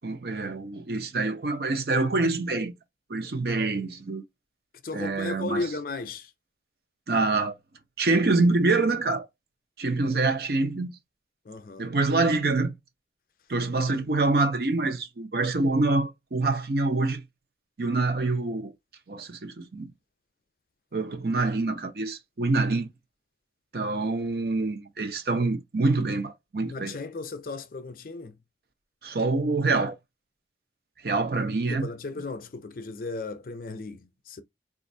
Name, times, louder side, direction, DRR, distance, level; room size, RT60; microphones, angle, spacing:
voice 1, 0.0-2.7 3.1-4.2 4.9-5.6 7.1-7.6 8.0-9.3 9.8-10.9 11.8-12.7 13.5-17.2 17.8-18.7 19.1-19.9 20.9-22.9 23.7-27.0 29.0-30.0 31.0-31.9, right 3 dB, 55° right, 0.6 m, -26 dB
voice 2, 4.8-6.3 11.5-11.9 26.6-28.4 31.7-34.4, left 3 dB, 50° left, 0.5 m, -35 dB
3.9 x 2.5 x 2.6 m
head